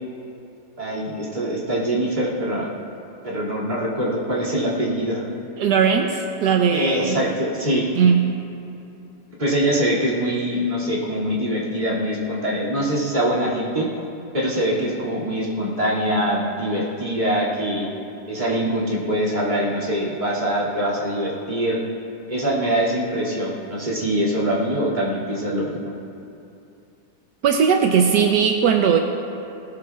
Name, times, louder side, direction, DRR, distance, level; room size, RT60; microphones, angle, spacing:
voice 1, 0.8-2.7 3.2-5.2 6.7-7.9 9.4-13.9 14.3-17.9 18.3-21.8 22.3-25.9, equal, 25° right, -6 dB, 2.6 m, -23 dB
voice 2, 5.6-7.2 8.0-8.3 27.4-29.0, right 7 dB, 80° right, 3 dB, 1.3 m, -18 dB
19.5 x 16.5 x 2.4 m, 2.7 s
omnidirectional pair, 1.8 m